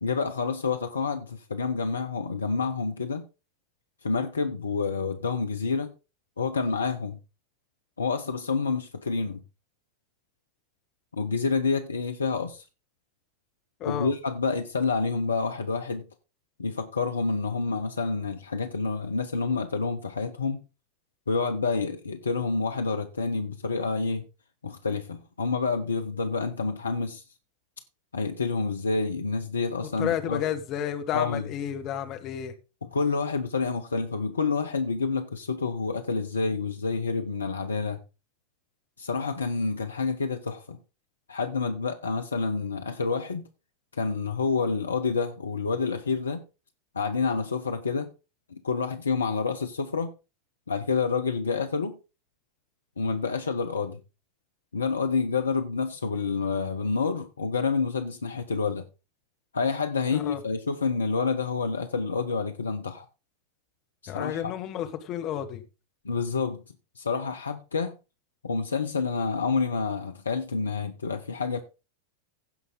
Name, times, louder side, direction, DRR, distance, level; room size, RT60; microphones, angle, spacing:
voice 1, 0.0-3.2 4.0-5.9 6.4-7.2 8.0-9.4 11.1-12.6 13.8-16.1 16.6-20.6 21.3-24.2 24.6-27.2 28.1-30.4 31.1-31.5 32.9-38.0 39.0-40.8 41.3-43.4 43.9-46.4 46.9-48.1 48.5-50.1 50.7-52.0 53.0-54.0 54.7-58.8 59.5-63.1 64.0-64.5 66.0-66.6 67.0-67.9 68.4-71.6, left 4 dB, 75° left, 0.8 m, -28 dB
voice 2, 13.8-14.1 30.0-32.5 60.1-60.4 64.1-65.6, left 10 dB, 35° left, 1.5 m, -31 dB
16.0 x 5.5 x 3.9 m
figure-of-eight pair, 90°, 0 cm